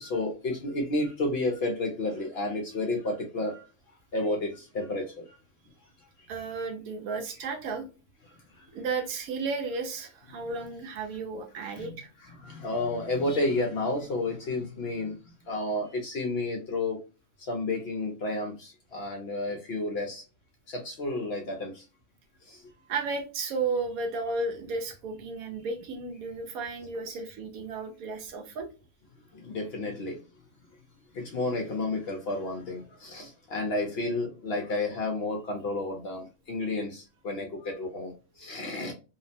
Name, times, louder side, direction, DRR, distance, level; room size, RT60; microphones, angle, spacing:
voice 1, 0.0-3.7 4.1-5.3 8.3-8.7 11.8-12.0 12.2-15.2 15.5-17.0 17.4-20.2 20.7-21.8 22.4-22.6 29.3-30.2 31.1-38.9, left 2 dB, 60° left, 3 dB, 0.7 m, -31 dB
voice 2, 6.3-7.9 8.7-12.1 22.9-28.7, right 4 dB, 90° right, 4 dB, 1.2 m, -33 dB
2.8 x 2.0 x 2.6 m, 0.31 s
omnidirectional pair, 1.4 m